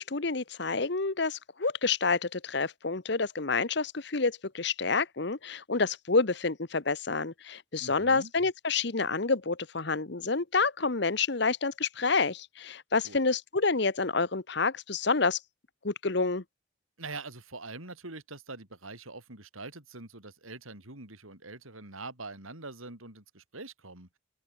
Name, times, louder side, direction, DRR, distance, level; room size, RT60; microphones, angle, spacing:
voice 1, 0.0-15.4 15.8-16.4, left 4 dB, 55° left, 1.0 m, -28 dB
voice 2, 7.8-8.3 13.0-13.2 17.0-24.2, right 3 dB, 85° right, 5.7 m, -44 dB
open air
head